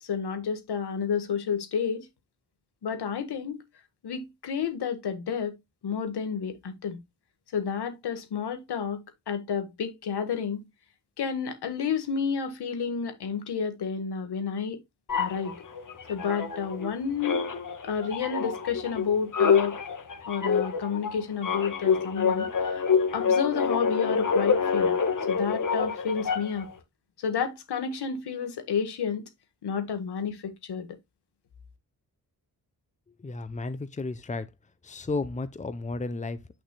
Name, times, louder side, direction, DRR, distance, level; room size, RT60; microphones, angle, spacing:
voice 1, 0.0-2.1 2.8-3.6 4.0-5.6 5.8-7.0 7.5-10.6 11.2-14.8 15.2-15.6 16.1-17.4 17.8-19.8 20.3-22.8 23.1-25.0 25.3-26.7 27.2-29.3 29.6-30.9, left 6 dB, 90° left, 1.6 m, -30 dB
sound 1, 15.1-16.9 17.2-26.7, left 6 dB, 55° left, 1.6 m, -26 dB
voice 2, 33.2-34.5 34.8-36.4, left 3 dB, 20° left, 0.8 m, -33 dB
8.7 x 6.1 x 2.2 m
cardioid pair, 85°, 39 cm